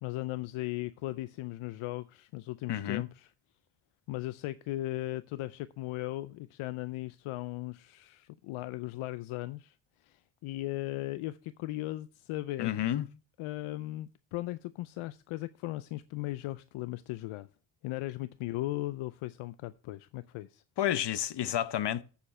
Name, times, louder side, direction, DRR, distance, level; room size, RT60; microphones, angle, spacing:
voice 1, 0.0-3.3 4.1-12.8 13.4-17.5 17.8-20.6, left 17 dB, 90° left, 0.6 m, -37 dB
voice 2, 2.7-3.0 12.6-13.1 20.8-22.0, left 11 dB, 55° left, 0.9 m, -30 dB
7.1 x 7.0 x 7.5 m
cardioid pair, 85°, 48 cm